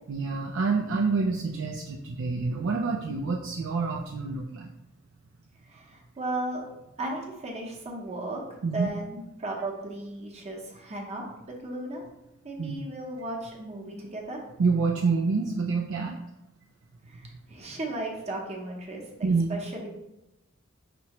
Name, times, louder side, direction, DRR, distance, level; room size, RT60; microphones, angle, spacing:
voice 1, 0.1-4.7 8.6-8.9 12.6-12.8 14.6-16.2 19.2-19.6, right 4 dB, 80° right, 1 dB, 0.4 m, -27 dB
voice 2, 5.6-6.6 7.0-8.4 8.7-12.0 12.4-14.4 17.1-19.0 19.5-19.9, right 2 dB, 35° right, -1 dB, 0.8 m, -35 dB
5.5 x 3.0 x 2.9 m, 0.90 s
head